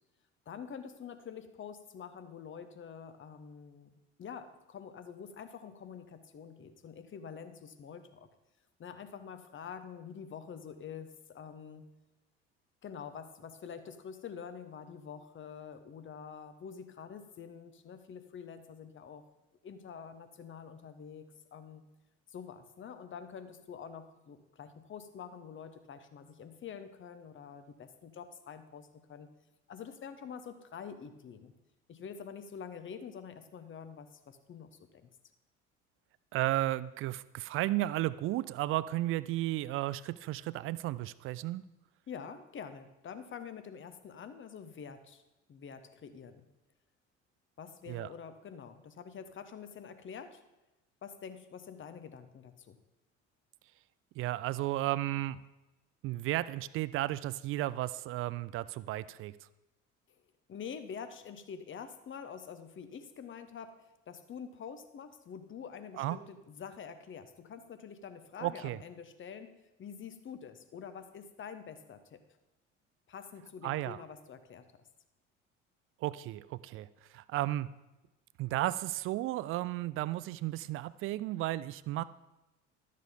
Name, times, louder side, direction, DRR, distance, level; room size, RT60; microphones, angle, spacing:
voice 1, 0.5-8.3 8.8-11.8 12.8-19.2 19.6-21.2 21.5-21.8 22.3-29.3 29.7-31.5 31.9-35.1 42.1-45.2 45.5-46.5 47.6-50.4 51.0-52.8 60.5-69.5 69.8-72.2 73.1-74.6, left 7 dB, 30° left, 10 dB, 1.0 m, -46 dB
voice 2, 36.3-41.6 47.9-48.1 54.2-55.4 56.0-59.4 65.9-66.2 68.4-68.8 73.6-74.0 76.0-77.7 78.4-82.0, right 15 dB, 35° right, 17 dB, 0.4 m, -34 dB
12.0 x 6.7 x 5.2 m, 1.0 s
figure-of-eight pair, 60°, 37 cm